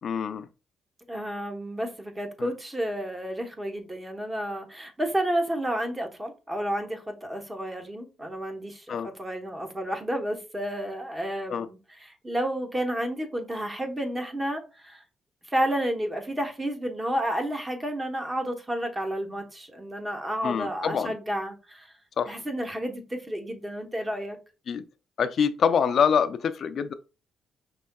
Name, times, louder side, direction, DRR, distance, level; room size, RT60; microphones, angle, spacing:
voice 1, 0.0-0.5 2.4-2.5 8.9-9.1 11.5-11.7 20.4-21.1 22.2-22.4 24.7-24.8 25.2-26.9, left 7 dB, 55° left, 0.3 m, -25 dB
voice 2, 1.1-15.0 15.5-21.9 22.3-24.4, right 1 dB, 20° right, 1.0 m, -31 dB
5.3 x 3.5 x 2.2 m
cardioid pair, 105°, 0 cm